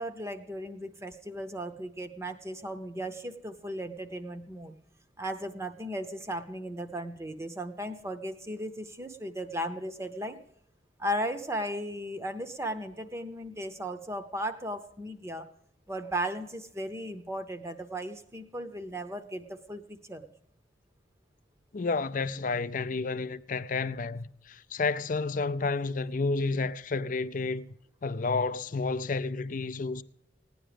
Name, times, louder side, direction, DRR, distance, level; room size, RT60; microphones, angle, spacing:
voice 1, 0.0-4.7 5.2-10.4 11.0-15.5 15.9-20.3, equal, 15° right, 0.8 m, -36 dB
voice 2, 21.7-27.7 28.0-30.0, left 4 dB, 45° left, 0.5 m, -30 dB
16.5 x 10.0 x 5.1 m
head